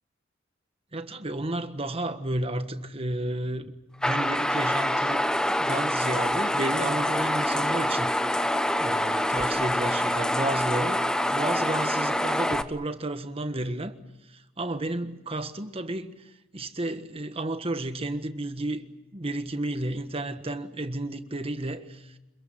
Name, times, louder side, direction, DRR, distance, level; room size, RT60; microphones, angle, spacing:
voice 1, 0.9-3.7 4.0-5.3 5.6-8.2 8.8-11.0 11.3-13.9 14.6-16.1 16.5-18.8 19.1-22.0, right 1 dB, 30° right, 1.4 m, -32 dB
sound 1, 4.0-12.6, left 1 dB, 5° left, 0.8 m, -26 dB
26.0 x 22.0 x 7.8 m
head